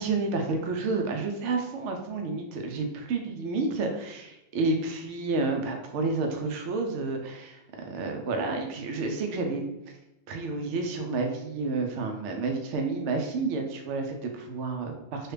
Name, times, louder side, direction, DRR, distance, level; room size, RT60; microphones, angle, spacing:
voice 1, 0.0-7.6 7.9-9.6 10.3-15.3, right 3 dB, 70° right, 3 dB, 0.9 m, -30 dB
3.1 x 2.3 x 3.2 m, 0.91 s
omnidirectional pair, 1.4 m